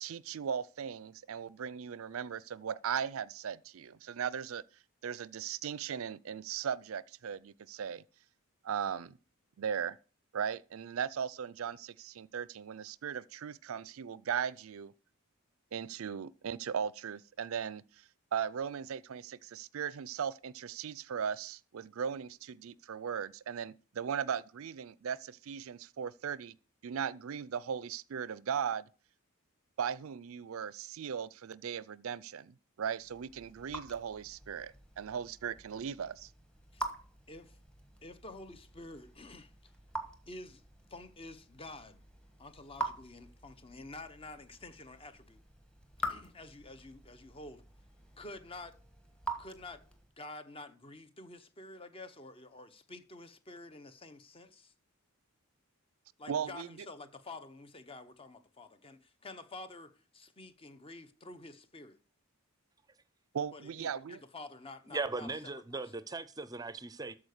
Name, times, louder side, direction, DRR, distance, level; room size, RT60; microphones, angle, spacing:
voice 1, 0.0-4.6 5.0-8.0 8.6-9.2 9.6-10.0 10.3-14.9 15.7-17.8 18.3-26.5 26.8-28.9 29.8-36.3 56.3-56.7 63.3-64.2, right 7 dB, 70° right, 0.4 m, -38 dB
Raindrop / Drip, 33.0-50.2, right 1 dB, 5° left, 1.3 m, -45 dB
voice 2, 37.3-37.6 38.0-39.7 40.3-40.6 40.9-42.0 42.4-45.4 46.0-47.7 48.2-48.8 49.4-49.8 50.2-54.7 56.2-62.0 63.5-65.3 65.7-65.9, left 2 dB, 25° left, 0.8 m, -49 dB
voice 3, 64.9-67.1, right 3 dB, 15° right, 0.6 m, -38 dB
13.5 x 4.8 x 6.5 m
head